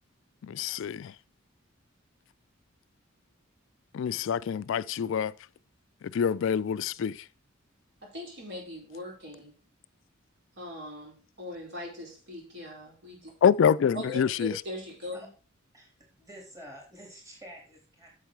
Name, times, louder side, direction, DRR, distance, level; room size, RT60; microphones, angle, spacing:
voice 1, 0.4-1.1 3.9-5.3 6.1-7.2 13.4-14.5, left 7 dB, 65° left, 0.3 m, -26 dB
voice 2, 8.0-9.5 10.6-13.3 13.9-15.3, left 1 dB, 60° right, 4.8 m, -40 dB
voice 3, 15.7-18.1, equal, 15° right, 3.4 m, -49 dB
8.3 x 7.3 x 4.6 m
head